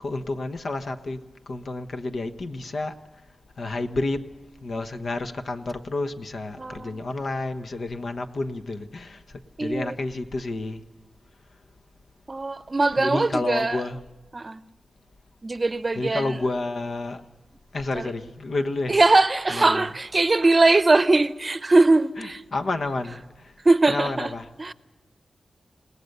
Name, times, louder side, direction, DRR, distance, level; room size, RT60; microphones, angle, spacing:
voice 1, 0.0-3.0 3.6-4.3 4.6-10.9 13.0-14.0 15.9-17.2 17.7-19.0 19.5-19.9 22.2-23.5 23.9-24.5, left 2 dB, 70° left, 1.2 m, -30 dB
voice 2, 6.6-7.1 9.6-10.0 12.3-13.8 14.3-14.6 15.4-16.4 17.9-18.0 18.9-22.4 23.6-24.3 24.6-24.7, right 2 dB, 35° right, 0.7 m, -21 dB
29.0 x 18.0 x 6.8 m
wide cardioid pair, 80°, 0 cm